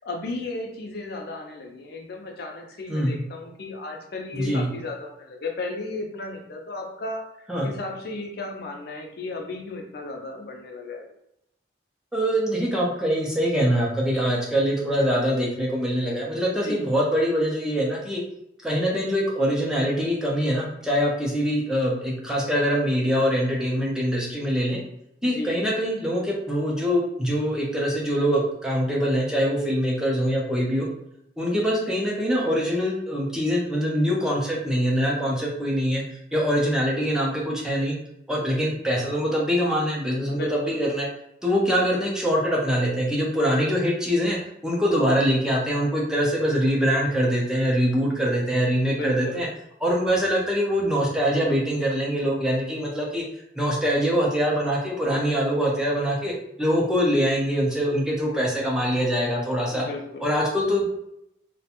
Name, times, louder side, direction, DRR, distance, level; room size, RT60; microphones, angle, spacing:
voice 1, 0.0-7.3 7.6-11.0 16.5-16.9 25.2-25.6 40.3-40.8 48.9-49.4 59.7-60.3, left 2 dB, 60° left, 2 dB, 0.5 m, -34 dB
voice 2, 2.9-3.2 4.3-4.7 7.5-7.7 12.1-18.2 18.6-24.8 25.2-30.9 31.4-36.0 36.3-37.9 38.3-41.1 41.4-44.4 44.6-49.5 49.8-53.2 53.5-56.3 56.6-59.8 60.2-60.9, equal, 5° right, -4 dB, 0.5 m, -23 dB
2.4 x 2.1 x 2.8 m, 0.78 s
head